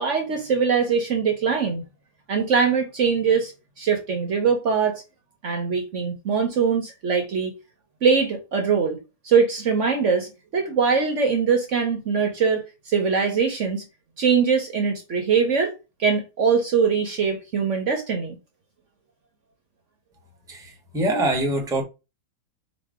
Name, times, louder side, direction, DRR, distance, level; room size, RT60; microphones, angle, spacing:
voice 1, 0.0-1.8 2.3-3.5 3.8-5.0 5.4-7.5 8.0-9.0 9.2-13.8 14.2-15.7 16.0-18.4, right 6 dB, 55° right, 1.1 m, -22 dB
voice 2, 20.5-21.8, right 1 dB, 5° right, 0.9 m, -24 dB
4.1 x 2.5 x 4.7 m
omnidirectional pair, 1.7 m